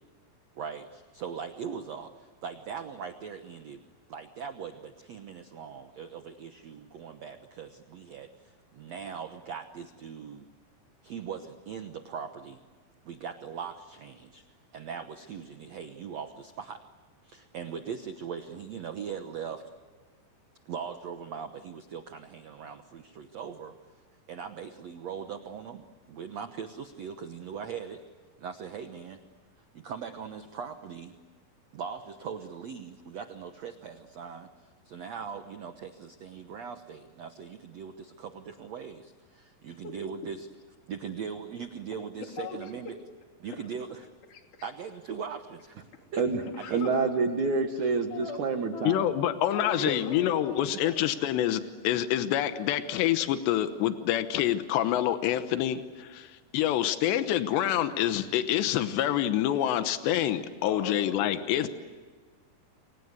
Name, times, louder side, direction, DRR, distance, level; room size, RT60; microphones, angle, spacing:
voice 1, 0.5-3.8 4.1-10.5 11.0-12.6 13.0-14.4 14.7-16.8 17.2-19.7 20.6-23.8 24.3-28.0 28.4-29.2 29.7-31.1 31.7-40.5 40.9-43.0 43.4-44.1 44.6-46.2 46.6-46.9, right 7 dB, 85° right, 8 dB, 1.4 m, -40 dB
voice 2, 39.7-40.3 42.2-43.0 43.4-43.6 44.3-44.7 45.9-46.0 46.6-47.0 47.8-48.4 48.7-48.9 49.5-51.2 60.6-61.7, left 4 dB, 50° left, 3 dB, 4.4 m, -41 dB
voice 3, 46.7-49.1, right 4 dB, 55° right, 6 dB, 2.5 m, -27 dB
voice 4, 48.8-61.7, left 11 dB, 85° left, 9 dB, 3.3 m, -27 dB
29.5 x 25.0 x 8.2 m, 1.4 s
omnidirectional pair, 4.8 m